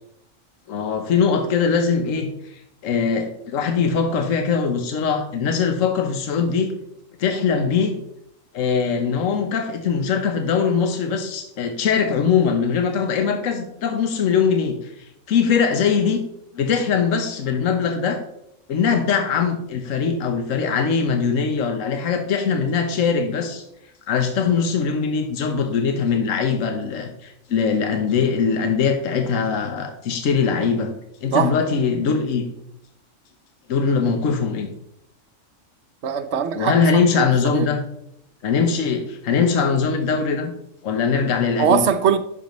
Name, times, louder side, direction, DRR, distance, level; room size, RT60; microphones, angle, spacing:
voice 1, 0.7-6.7 7.2-7.9 8.5-16.2 16.5-18.2 18.7-23.6 24.1-30.9 31.2-32.4 33.7-34.7 36.5-37.8 38.4-40.5 40.8-41.9, left 6 dB, 75° left, 5 dB, 1.3 m, -21 dB
voice 2, 36.0-36.8 37.5-37.7 41.6-42.2, right 7 dB, 60° right, 8 dB, 1.0 m, -20 dB
10.0 x 6.7 x 3.1 m, 0.78 s
omnidirectional pair, 1.4 m